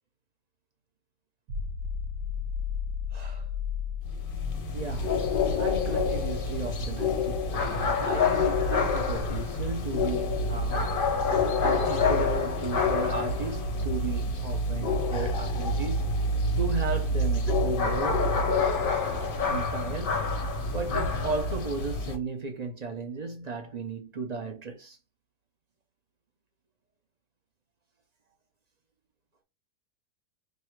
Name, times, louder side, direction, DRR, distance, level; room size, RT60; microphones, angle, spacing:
sound 1, 1.5-15.0 17.7-17.8, left 7 dB, 75° right, 1.1 m, -37 dB
voice 1, 3.1-3.5 4.7-5.2 5.6-11.0 11.6-16.1 16.6-18.3 19.5-25.0, right 4 dB, 40° right, 0.5 m, -35 dB
sound 2, 4.1-22.2, left 3 dB, 45° left, 0.7 m, -27 dB
3.2 x 2.6 x 4.5 m
omnidirectional pair, 1.7 m